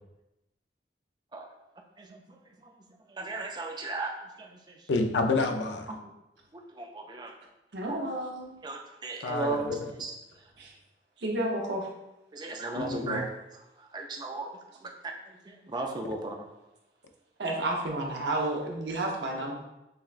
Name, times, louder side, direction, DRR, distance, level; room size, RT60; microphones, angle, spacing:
voice 1, 3.2-4.5 5.9-6.1 6.5-7.3 7.9-8.0 8.6-9.7 10.0-10.1 12.3-13.3 13.9-14.5 14.8-15.1 15.5-16.4, right 3 dB, 25° right, 2 dB, 0.4 m, -35 dB
voice 2, 4.9-5.9 9.2-9.9 12.8-13.3, left 3 dB, 85° left, 5 dB, 0.5 m, -29 dB
voice 3, 7.7-8.5 10.6-10.7 11.2-11.9 17.4-19.5, right 1 dB, 80° right, 0 dB, 0.7 m, -31 dB
6.5 x 2.2 x 2.4 m, 0.93 s
head